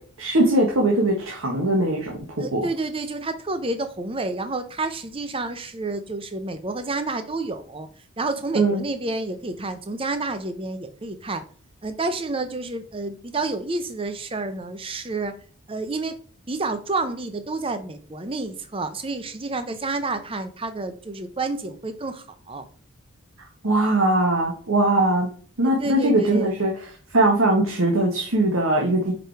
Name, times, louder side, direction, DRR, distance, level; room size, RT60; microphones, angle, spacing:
voice 1, 0.2-2.7 8.5-8.8 23.6-25.3 25.6-26.9 27.1-29.1, right 1 dB, 65° right, 0 dB, 1.3 m, -21 dB
voice 2, 2.4-7.9 8.2-11.4 11.8-15.3 15.7-16.2 16.5-22.7 25.8-26.5, right 3 dB, 25° right, 9 dB, 0.6 m, -29 dB
4.9 x 4.9 x 4.5 m, 0.43 s
head